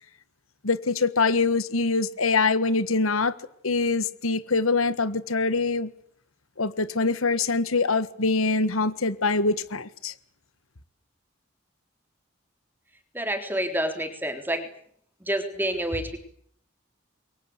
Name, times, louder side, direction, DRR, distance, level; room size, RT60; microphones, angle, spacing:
voice 1, 0.6-3.4 3.6-5.9 6.6-10.1, left 3 dB, 90° left, 1.5 m, -24 dB
voice 2, 13.1-14.7 15.2-16.2, right 1 dB, 10° right, 3.7 m, -28 dB
28.5 x 23.0 x 8.0 m
head